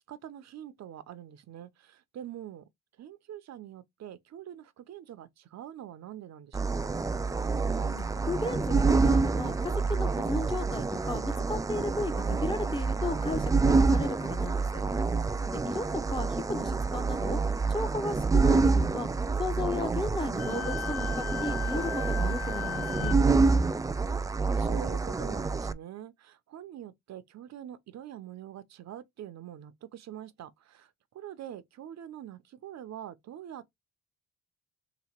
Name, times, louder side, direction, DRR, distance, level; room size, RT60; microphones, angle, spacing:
voice 1, 0.1-2.6 3.0-6.9 24.5-33.7, right 11 dB, 60° right, 0.7 m, -44 dB
sound 1, 6.5-25.7, right 4 dB, 10° right, 0.3 m, -27 dB
voice 2, 7.7-14.8 15.5-17.4 17.7-19.1 19.4-23.2, left 2 dB, 15° left, 0.8 m, -35 dB
Wind instrument woodwind instrument, 20.4-23.2, left 12 dB, 90° left, 1.2 m, -37 dB
3.3 x 3.0 x 4.3 m
cardioid pair, 90°, 30 cm